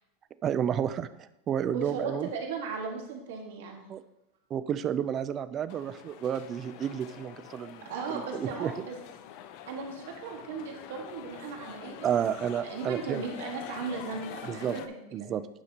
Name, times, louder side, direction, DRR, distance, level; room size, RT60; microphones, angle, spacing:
voice 1, 0.4-2.3 3.9-4.0 4.5-8.7 12.0-13.2 14.5-14.7 15.1-15.4, right 9 dB, 25° right, 13 dB, 0.3 m, -31 dB
voice 2, 1.7-3.8 7.8-8.9 9.7-12.1 12.6-15.3, right 5 dB, 75° right, 1 dB, 1.6 m, -37 dB
sound 1, 5.7-14.9, left 10 dB, 45° left, 0.5 m, -46 dB
9.5 x 5.8 x 2.9 m, 0.87 s
supercardioid pair, 160°, 0 cm